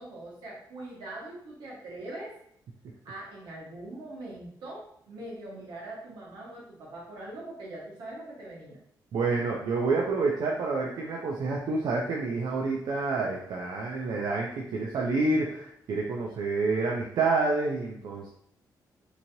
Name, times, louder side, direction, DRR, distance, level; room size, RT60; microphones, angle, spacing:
voice 1, 0.0-2.3 3.0-8.8, right 1 dB, 85° right, -4 dB, 1.1 m, -42 dB
voice 2, 9.1-18.3, right 3 dB, 65° right, -1 dB, 0.4 m, -28 dB
3.0 x 2.7 x 2.6 m, 0.69 s
cardioid pair, 140°, 7 cm